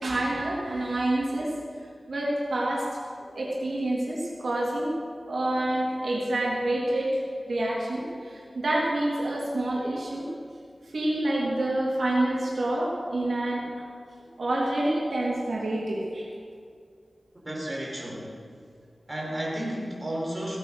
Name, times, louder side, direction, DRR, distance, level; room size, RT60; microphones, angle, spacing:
voice 1, 0.0-1.6 2.1-2.9 3.3-5.0 5.3-7.2 7.5-10.3 10.9-13.6 14.4-16.3, right 1 dB, 80° right, -5 dB, 3.4 m, -27 dB
voice 2, 17.3-18.4 19.1-20.6, right 1 dB, 20° right, -3 dB, 4.2 m, -33 dB
16.5 x 9.2 x 6.5 m, 2.2 s
wide cardioid pair, 75°, 0 cm